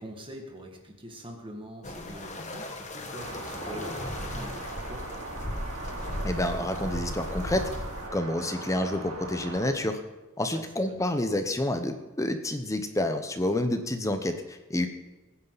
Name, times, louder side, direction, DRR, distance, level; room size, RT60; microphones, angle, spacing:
voice 1, 0.0-5.1 10.5-10.9, equal, 25° right, 2 dB, 2.1 m, -43 dB
sound 1, 1.8-8.1, left 1 dB, 35° left, 1.4 m, -37 dB
sound 2, 3.2-9.7, right 2 dB, 75° right, 3.1 m, -39 dB
voice 2, 6.2-7.7 8.1-10.0 10.4-14.9, left 1 dB, 15° left, 7 dB, 0.9 m, -29 dB
22.0 x 9.8 x 4.1 m, 1.1 s
head